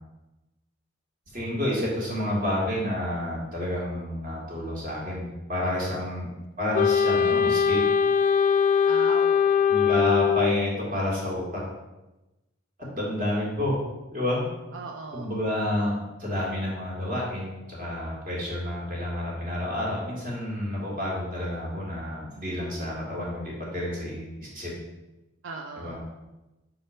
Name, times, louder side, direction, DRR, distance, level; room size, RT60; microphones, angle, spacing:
voice 1, 1.3-6.3 6.6-7.8 9.7-11.6 12.9-13.8 14.1-14.5 15.1-24.7 25.8-26.0, left 1 dB, 45° right, -4 dB, 2.1 m, -29 dB
voice 2, 5.6-6.2 8.8-9.9 14.7-15.3 25.4-26.0, right 3 dB, 80° right, 1 dB, 0.6 m, -39 dB
Wind instrument woodwind instrument, 6.7-10.7, left 7 dB, 40° left, 0.3 m, -21 dB
5.7 x 4.4 x 5.0 m, 1.0 s
head